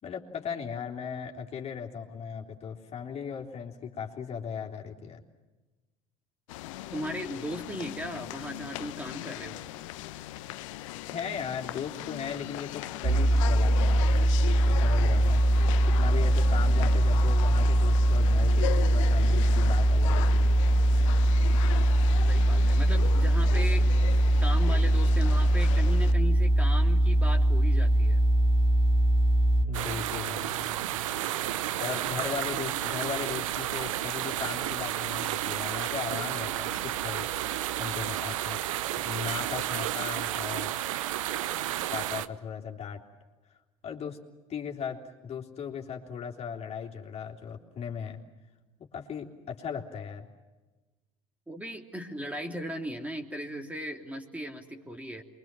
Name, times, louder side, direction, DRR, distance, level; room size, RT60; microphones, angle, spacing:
voice 1, 0.0-5.2 11.1-14.3 14.7-15.4 15.9-20.5 29.7-31.0 31.8-40.7 41.9-43.0 43.8-44.2 44.5-48.2 48.9-50.3, left 7 dB, 40° left, 0 dB, 3.6 m, -37 dB
sound 1, 6.5-26.1, left 15 dB, 70° left, 1.0 m, -38 dB
voice 2, 6.9-9.6 22.3-23.9 24.4-28.2 32.1-32.5 51.5-55.2, equal, 10° right, 3 dB, 3.3 m, -37 dB
sound 2, 13.0-29.7, right 1 dB, 30° right, 5.3 m, -22 dB
sound 3, 29.7-42.3, right 13 dB, 75° right, 1.0 m, -32 dB
28.0 x 23.5 x 7.7 m, 1.2 s
hypercardioid pair, 75°, 17 cm